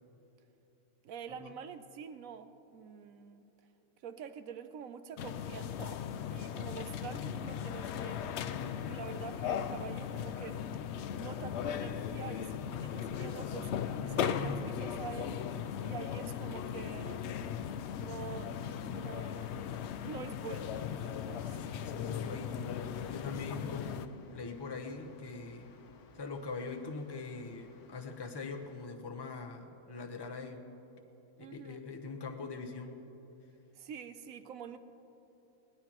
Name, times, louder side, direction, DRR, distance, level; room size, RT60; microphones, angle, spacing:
voice 1, 1.0-3.5 4.0-10.6 11.2-13.7 14.0-14.5 14.8-17.4 18.0-19.6 20.0-21.6 31.4-31.8 33.7-34.8, right 7 dB, 70° right, 10 dB, 1.0 m, -46 dB
sound 1, 5.2-24.1, left 8 dB, 65° left, 0.7 m, -38 dB
voice 2, 8.3-8.9 14.0-14.6 21.8-22.6 23.1-25.7 26.2-30.7 31.4-33.0, left 4 dB, 20° left, 5 dB, 0.7 m, -42 dB
sound 2, 14.1-28.9, left 4 dB, 85° left, 1.4 m, -55 dB
20.5 x 18.0 x 3.0 m, 3.0 s
omnidirectional pair, 1.5 m